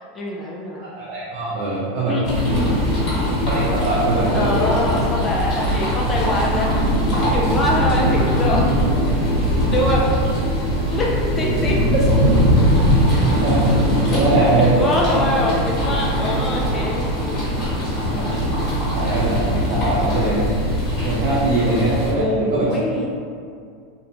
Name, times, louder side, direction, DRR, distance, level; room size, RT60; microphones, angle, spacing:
voice 1, 0.1-0.8 2.1-2.2 2.5-2.8 4.3-6.7 7.3-8.6 9.7-10.0 10.8-11.8 14.1-17.2 22.1-23.1, left 1 dB, 20° left, -3 dB, 0.4 m, -24 dB
voice 2, 0.8-2.4 3.5-4.7 13.4-13.6 14.1-14.7 18.1-18.3 18.9-20.5 21.0-22.7, right 2 dB, 50° right, -7 dB, 0.5 m, -22 dB
sound 1, 2.2-22.1, equal, 35° left, 1.3 m, -20 dB
2.5 x 2.1 x 2.8 m, 2.3 s
supercardioid pair, 135°, 0 cm